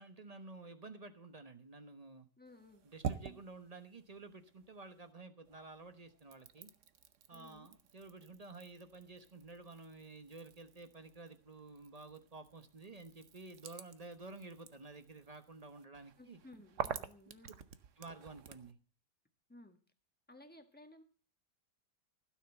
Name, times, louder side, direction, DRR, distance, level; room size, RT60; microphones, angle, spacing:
voice 1, 0.0-2.3 2.8-6.7 7.3-16.4 18.0-18.8, right 3 dB, 25° right, 9 dB, 0.9 m, -52 dB
voice 2, 2.4-2.8 7.3-7.7 16.2-17.6 19.5-19.8 20.3-21.0, left 2 dB, 5° left, 5 dB, 1.4 m, -57 dB
sound 1, 2.5-5.1 5.5-18.7, right 8 dB, 55° right, 1.0 m, -49 dB
16.0 x 6.6 x 7.7 m, 0.40 s
omnidirectional pair, 2.0 m